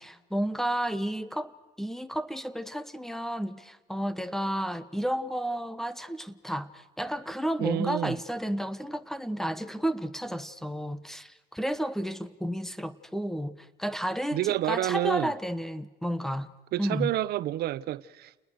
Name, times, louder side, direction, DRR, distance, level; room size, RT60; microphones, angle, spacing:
voice 1, 0.0-1.5 1.8-16.5 16.8-17.1, equal, ahead, 1.4 m, -32 dB
voice 2, 7.6-8.2 14.3-15.3 16.7-18.5, right 14 dB, 70° right, 0.8 m, -29 dB
29.5 x 20.0 x 6.5 m
cardioid pair, 110°, 17 cm